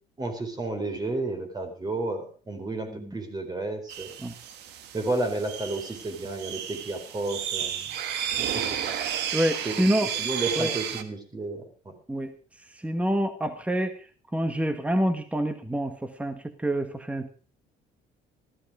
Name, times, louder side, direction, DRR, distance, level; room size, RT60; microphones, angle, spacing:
voice 1, 0.2-4.1 4.9-7.9 8.5-8.8 9.6-11.9, right 2 dB, 25° right, 7 dB, 4.2 m, -32 dB
sound 1, 3.9-11.0, right 9 dB, 85° right, 1.6 m, -32 dB
voice 2, 9.3-10.1 10.6-10.7 12.1-12.3 12.7-13.9 14.3-17.3, equal, 10° right, 9 dB, 1.3 m, -27 dB
14.5 x 14.5 x 4.9 m, 0.38 s
cardioid pair, 110°, 17 cm